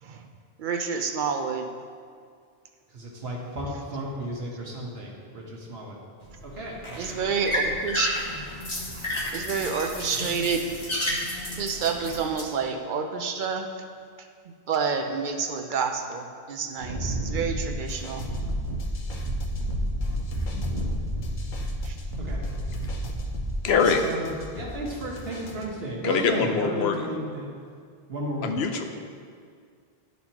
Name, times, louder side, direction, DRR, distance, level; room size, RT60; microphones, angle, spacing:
voice 1, 0.6-1.7 7.0-8.1 8.9-10.8 11.6-13.7 14.5-18.3 21.8-22.0, right 5 dB, 60° right, 5 dB, 0.7 m, -29 dB
voice 2, 2.9-6.0 6.4-7.3 7.6-7.8 22.2-22.4 23.7-27.5 28.1-28.5, right 1 dB, 75° right, -2 dB, 1.4 m, -34 dB
sound 1, 6.2-12.4, left 1 dB, 30° left, 1.1 m, -32 dB
Wind, 16.8-23.9, right 1 dB, 35° right, 1.2 m, -30 dB
sound 2, 17.9-25.7, left 2 dB, 55° left, 0.8 m, -40 dB
voice 3, 23.6-24.0 26.0-27.1 28.4-28.8, left 5 dB, 90° left, 5 dB, 0.9 m, -23 dB
11.5 x 4.2 x 2.9 m, 2.1 s
omnidirectional pair, 1.0 m